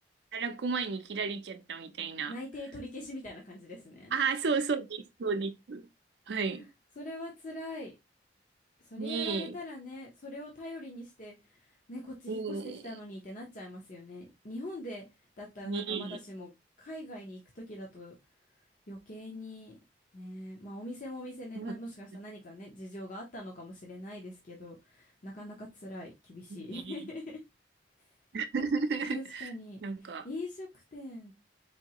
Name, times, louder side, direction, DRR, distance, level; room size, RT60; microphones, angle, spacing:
voice 1, 0.3-2.3 4.1-5.8 6.3-6.6 9.0-9.5 12.3-12.8 15.6-16.2 21.6-21.7 26.5-26.9 28.3-29.5 29.8-30.3, right 5 dB, 70° right, 0.5 m, -33 dB
voice 2, 2.3-4.2 6.4-6.7 7.0-7.9 8.8-15.0 15.4-16.5 16.8-18.1 18.9-19.8 20.1-27.4 29.1-31.3, left 1 dB, 50° left, 0.8 m, -43 dB
4.5 x 2.7 x 2.8 m
head